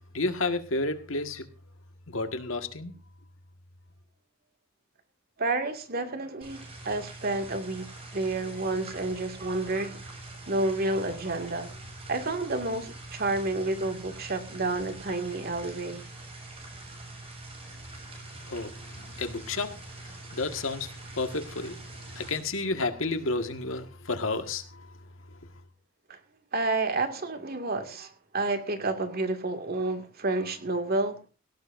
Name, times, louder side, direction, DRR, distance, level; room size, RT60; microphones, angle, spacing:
voice 1, 0.1-1.5 2.1-2.9 18.5-24.9, left 3 dB, 80° left, 1.8 m, -32 dB
voice 2, 5.4-7.9 8.1-10.0 10.5-11.7 12.1-16.0 26.5-31.2, right 2 dB, 50° right, 2.2 m, -30 dB
sound 1, 6.4-22.4, right 2 dB, 30° right, 7.0 m, -44 dB
17.5 x 17.5 x 2.6 m
head